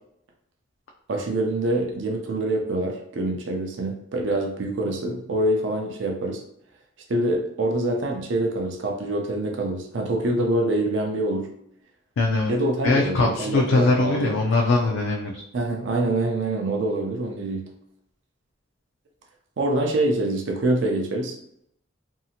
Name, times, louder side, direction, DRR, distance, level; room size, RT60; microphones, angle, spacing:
voice 1, 1.1-6.4 7.1-11.5 12.5-14.3 15.5-17.6 19.6-21.4, right 1 dB, 70° right, 2 dB, 0.5 m, -25 dB
voice 2, 12.2-12.5 12.8-15.4, left 3 dB, 85° left, 0 dB, 0.3 m, -21 dB
2.7 x 2.4 x 2.7 m, 0.72 s
head